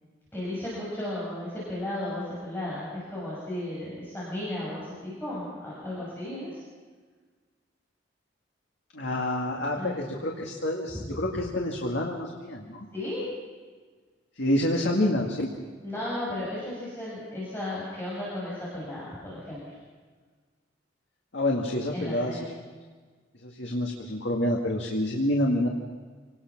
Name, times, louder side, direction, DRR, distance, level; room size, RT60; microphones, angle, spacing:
voice 1, 0.3-6.6 9.5-9.9 10.9-11.1 12.9-13.2 15.8-19.6 21.9-22.5, left 1 dB, 10° left, -8 dB, 6.6 m, -34 dB
voice 2, 8.9-12.9 14.4-15.5 21.3-22.5 23.4-25.7, left 1 dB, 65° left, 0 dB, 2.0 m, -28 dB
27.0 x 19.0 x 6.0 m, 1.5 s
head